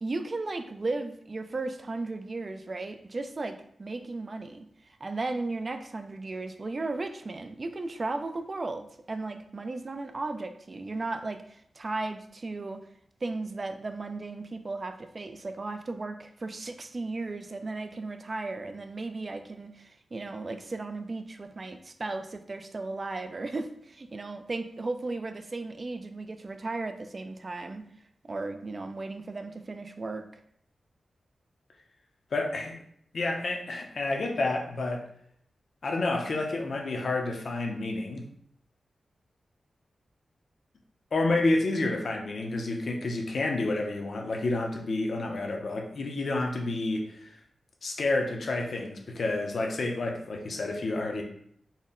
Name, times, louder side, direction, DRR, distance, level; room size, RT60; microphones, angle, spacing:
voice 1, 0.0-12.8 13.2-27.8 28.3-30.3, right 3 dB, 35° right, 8 dB, 0.3 m, -35 dB
voice 2, 32.3-32.8 33.1-35.0 35.8-38.3 41.1-47.3 47.8-51.2, left 2 dB, 55° left, 1 dB, 0.6 m, -29 dB
4.1 x 2.1 x 3.6 m, 0.66 s
wide cardioid pair, 150°, 0 cm